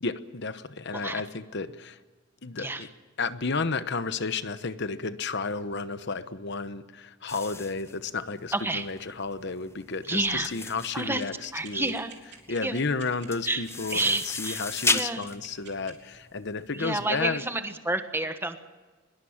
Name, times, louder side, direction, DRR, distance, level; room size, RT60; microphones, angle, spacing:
voice 1, 0.0-2.0 2.4-2.9 3.2-11.9 12.5-17.4, left 4 dB, 55° left, 12 dB, 1.1 m, -32 dB
sound 1, 7.3-16.9, left 3 dB, 15° left, 0.7 m, -34 dB
voice 2, 8.5-8.9 10.0-10.5 10.9-11.2 11.5-12.1 12.6-12.8 13.4-13.6 13.9-15.3 16.7-18.6, right 2 dB, 10° right, 8 dB, 1.4 m, -29 dB
sound 2, 11.2-15.9, right 9 dB, 60° right, 3.6 m, -47 dB
21.5 x 20.5 x 7.4 m, 1.4 s
head